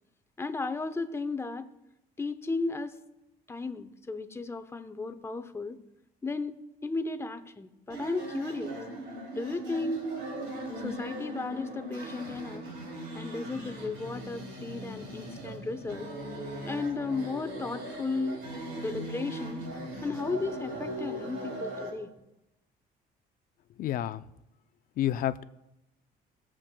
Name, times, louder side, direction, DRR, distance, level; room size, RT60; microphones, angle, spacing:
voice 1, 0.4-1.7 2.2-3.0 3.5-5.8 6.2-8.8 9.3-10.1 10.8-12.6 13.1-16.1 16.6-18.5 18.7-19.7 20.0-22.1, left 3 dB, 15° left, 9 dB, 0.6 m, -34 dB
sound 1, 7.9-21.9, right 1 dB, 90° right, 2.7 m, -39 dB
voice 2, 23.8-24.2 25.0-25.4, left 12 dB, 55° left, 14 dB, 0.4 m, -29 dB
18.5 x 7.4 x 2.2 m, 0.90 s
cardioid pair, 110°, 17 cm